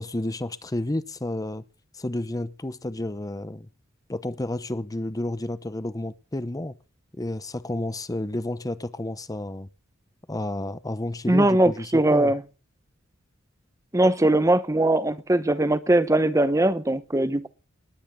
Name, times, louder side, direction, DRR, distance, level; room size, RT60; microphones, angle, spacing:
voice 1, 0.0-1.6 1.9-3.7 4.1-6.8 7.2-9.7 10.3-12.3, left 1 dB, 20° left, 0.8 m, -31 dB
voice 2, 11.3-12.4 13.9-17.5, right 1 dB, 15° right, 0.8 m, -20 dB
19.5 x 10.0 x 6.8 m
head